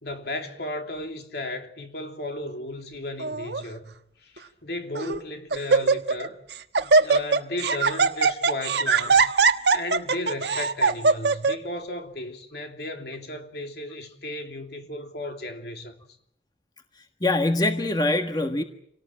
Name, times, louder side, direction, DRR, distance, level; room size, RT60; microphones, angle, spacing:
voice 1, 0.0-3.9 4.2-6.4 6.8-9.3 9.7-16.0, left 1 dB, 65° left, 3.1 m, -35 dB
Laughter, 3.2-3.6 4.4-4.5 5.0-5.2 5.5-6.3 6.5-11.5, right 4 dB, 75° right, 1.4 m, -21 dB
voice 2, 17.0-18.6, left 2 dB, 25° left, 1.5 m, -24 dB
27.5 x 18.5 x 8.9 m
head